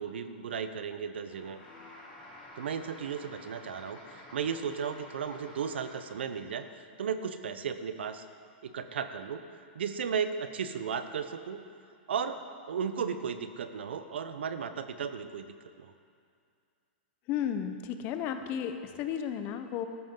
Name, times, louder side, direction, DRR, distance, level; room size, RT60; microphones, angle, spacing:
voice 1, 0.0-1.6 2.6-8.2 8.6-9.4 9.7-11.6 12.1-15.5 15.8-15.9, right 7 dB, 80° right, 10 dB, 0.8 m, -35 dB
sound 1, 1.3-6.2, left 1 dB, 20° left, 3.7 m, -51 dB
voice 2, 17.3-19.9, left 9 dB, 35° left, 8 dB, 0.9 m, -33 dB
13.5 x 12.5 x 3.8 m, 2.3 s
hypercardioid pair, 135°, 6 cm